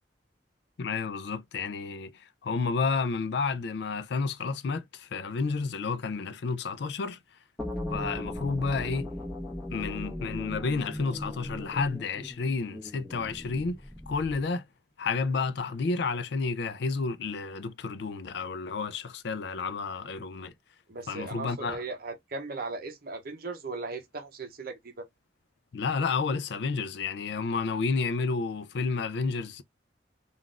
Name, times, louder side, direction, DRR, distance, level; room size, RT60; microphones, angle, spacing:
voice 1, 0.8-7.2 7.9-9.1 9.7-14.6 15.0-20.5 21.1-21.8 25.7-29.6, left 4 dB, 60° left, 0.4 m, -31 dB
sound 1, 7.6-14.5, left 1 dB, 5° left, 1.1 m, -38 dB
voice 2, 20.9-25.1, right 3 dB, 50° right, 0.7 m, -38 dB
3.8 x 2.4 x 2.3 m
head